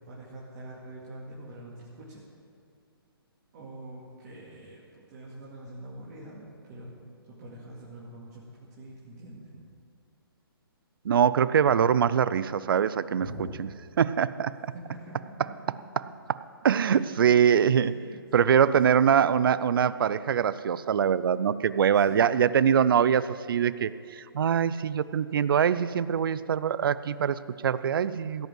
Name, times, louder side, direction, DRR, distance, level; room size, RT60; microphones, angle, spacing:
voice 1, 0.0-2.3 3.5-7.0 7.3-9.6 13.2-13.6 14.9-15.7 16.9-17.0 17.8-18.2 18.4-19.1 21.9-22.4, right 1 dB, 40° right, -6 dB, 2.3 m, -44 dB
voice 2, 11.0-13.3 14.0-14.7 16.6-17.9 18.3-28.5, right 8 dB, 60° right, 16 dB, 0.4 m, -23 dB
16.0 x 5.4 x 7.6 m, 2.3 s
hypercardioid pair, 140°, 13 cm